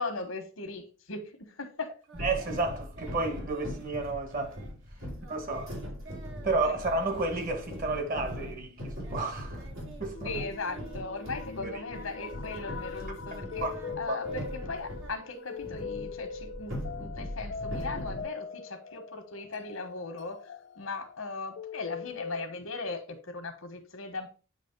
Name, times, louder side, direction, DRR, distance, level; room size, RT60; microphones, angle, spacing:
voice 1, 0.0-1.9 6.6-6.8 10.2-13.7 14.0-20.4 20.8-24.3, left 3 dB, 90° left, 1.4 m, -38 dB
Singing, 2.1-10.0 10.3-16.2, right 3 dB, 65° right, 1.2 m, -52 dB
sound 1, 2.1-15.1 15.6-18.2, equal, 90° right, 3.3 m, -40 dB
voice 2, 2.2-4.6 5.3-5.7 6.4-9.7 10.0-10.3 11.6-11.8 13.6-13.7 14.1-14.2, right 3 dB, 40° right, 1.3 m, -31 dB
sound 2, 10.1-22.5, left 5 dB, 55° left, 0.4 m, -42 dB
8.4 x 3.1 x 4.5 m
head